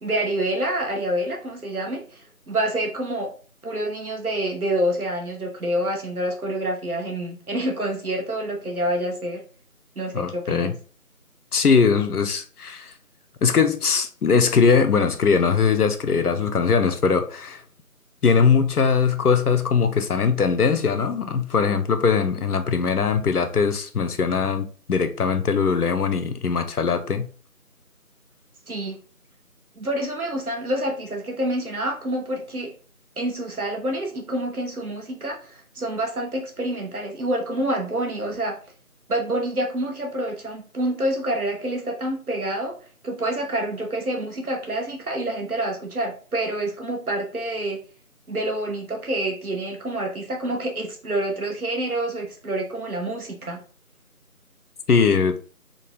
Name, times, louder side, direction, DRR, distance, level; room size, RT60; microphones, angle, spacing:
voice 1, 0.0-3.3 3.6-9.4 10.0-10.7 28.7-29.0 29.8-32.7 33.2-38.5 39.1-42.7 43.0-47.8 48.3-53.6, right 1 dB, 75° right, 1.1 m, -27 dB
voice 2, 10.1-10.7 11.5-12.9 13.4-17.6 18.2-27.3 54.9-55.4, left 5 dB, 90° left, 0.6 m, -21 dB
3.7 x 2.2 x 2.9 m
figure-of-eight pair, 180°, 44 cm